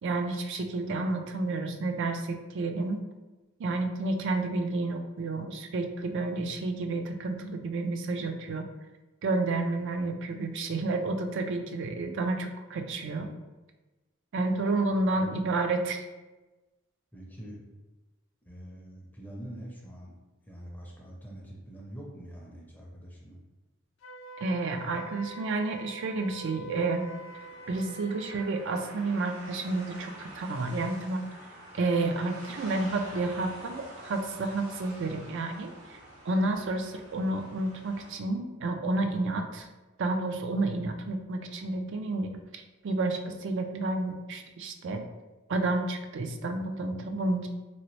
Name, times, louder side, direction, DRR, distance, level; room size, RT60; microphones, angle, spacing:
voice 1, 0.0-3.0 3.6-8.7 9.2-13.3 14.3-16.0 24.4-27.1 27.7-31.3 31.7-36.0 36.3-39.7 40.0-45.0 45.5-47.5, right 2 dB, 60° right, 5 dB, 0.4 m, -30 dB
voice 2, 17.1-17.6 18.4-20.1 20.5-23.4, equal, 10° left, -3 dB, 0.5 m, -44 dB
Wind instrument woodwind instrument, 24.0-28.5, right 2 dB, 70° left, 0.4 m, -45 dB
sound 1, 26.7-38.1, right 1 dB, 80° right, 1.4 m, -47 dB
3.0 x 2.9 x 3.0 m, 1.1 s
head